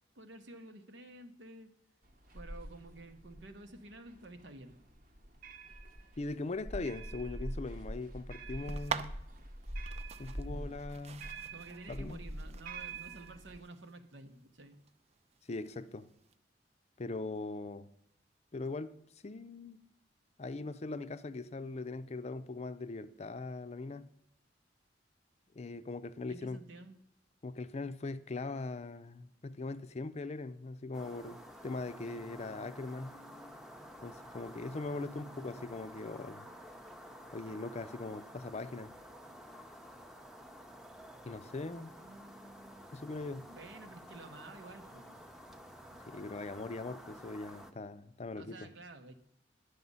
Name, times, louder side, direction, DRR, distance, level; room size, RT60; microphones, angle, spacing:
voice 1, 0.1-1.7 2.3-4.8 10.4-10.8 11.5-14.8 26.3-27.0 34.9-35.6 42.0-42.9 43.2-45.3 48.3-49.1, right 2 dB, 90° right, 1.1 m, -51 dB
sound 1, 2.0-13.6, right 1 dB, 50° right, 1.0 m, -45 dB
voice 2, 6.2-9.2 10.2-11.2 11.9-12.2 15.5-16.1 17.0-17.9 18.5-18.9 19.2-19.8 20.4-24.1 25.5-26.6 27.4-33.2 34.0-36.5 37.3-38.9 41.2-41.9 42.9-43.5 46.1-48.7, left 3 dB, 35° left, 0.5 m, -41 dB
sound 2, 8.7-16.3, right 6 dB, 35° right, 0.4 m, -46 dB
sound 3, 30.9-47.7, equal, 5° right, 0.7 m, -51 dB
11.0 x 6.8 x 5.5 m
head